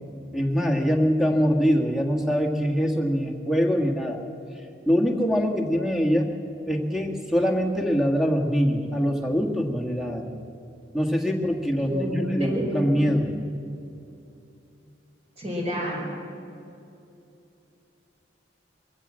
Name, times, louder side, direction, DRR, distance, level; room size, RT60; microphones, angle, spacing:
voice 1, 0.3-4.2 4.8-6.3 6.7-10.2 10.9-13.3, equal, ahead, 3 dB, 1.7 m, -23 dB
voice 2, 11.9-13.1 15.4-16.1, equal, 35° right, -1 dB, 5.2 m, -29 dB
22.5 x 15.5 x 7.5 m, 2.7 s
head